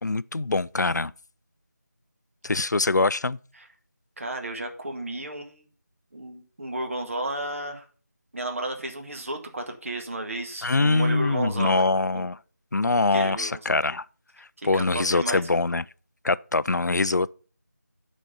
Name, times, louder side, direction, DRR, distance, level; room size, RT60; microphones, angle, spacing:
voice 1, 0.0-1.1 2.4-3.4 10.6-12.4 12.7-14.0 14.6-15.8 16.2-17.3, left 3 dB, 75° left, 0.4 m, -23 dB
voice 2, 4.2-5.6 6.1-7.9 8.3-11.8 12.1-12.3 12.9-13.8 14.6-15.4, right 1 dB, 50° right, 1.7 m, -33 dB
9.2 x 4.2 x 6.5 m
figure-of-eight pair, 165°, 10 cm